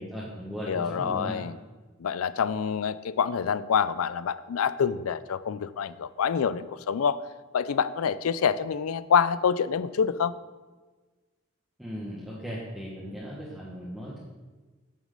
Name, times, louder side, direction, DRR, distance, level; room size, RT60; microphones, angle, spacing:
voice 1, 0.0-1.4 11.8-14.2, equal, ahead, -7 dB, 1.4 m, -37 dB
voice 2, 0.7-1.5 2.0-7.2 7.5-10.3, left 7 dB, 90° left, 16 dB, 0.4 m, -26 dB
9.3 x 6.2 x 6.7 m, 1.3 s
head